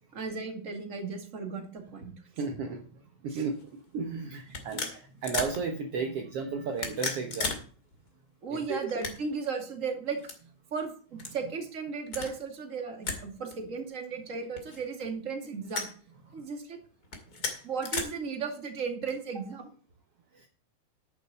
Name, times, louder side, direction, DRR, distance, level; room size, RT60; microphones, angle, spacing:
voice 1, 0.1-2.1 3.3-3.4 4.7-4.9 8.4-10.2 10.7-15.9 16.3-16.8 17.6-19.7, right 5 dB, 30° right, 4 dB, 2.3 m, -35 dB
voice 2, 2.4-7.6 8.5-8.9 16.3-16.4 17.3-17.4 20.3-20.5, right 5 dB, 60° right, 4 dB, 1.9 m, -34 dB
sound 1, 3.4-3.6 4.5-5.6 6.7-7.6 7.9-8.0 8.8-9.5 10.2-10.4 11.2-11.4 12.1-12.3 13.0-13.2 13.5-13.6 14.6-15.1 15.7-15.9 17.0-18.0, left 4 dB, 35° left, 2.5 m, -34 dB
11.0 x 9.4 x 4.2 m, 0.41 s
omnidirectional pair, 3.4 m